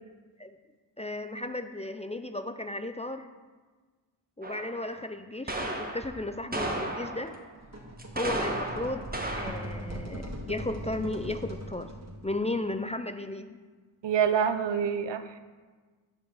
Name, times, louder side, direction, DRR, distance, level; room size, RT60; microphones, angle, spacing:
voice 1, 1.0-3.3 4.4-7.4 8.1-11.9 12.2-13.6, left 2 dB, 15° left, 8 dB, 0.4 m, -35 dB
sound 1, 4.4-4.9 5.5-6.1 6.5-7.4 8.0-9.8, right 1 dB, 20° right, 1.3 m, -34 dB
sound 2, 7.6-12.4, right 1 dB, 35° right, 1.6 m, -40 dB
voice 2, 14.0-15.4, right 7 dB, 70° right, 10 dB, 0.6 m, -26 dB
10.5 x 5.2 x 3.9 m, 1.4 s
cardioid pair, 40°, 45 cm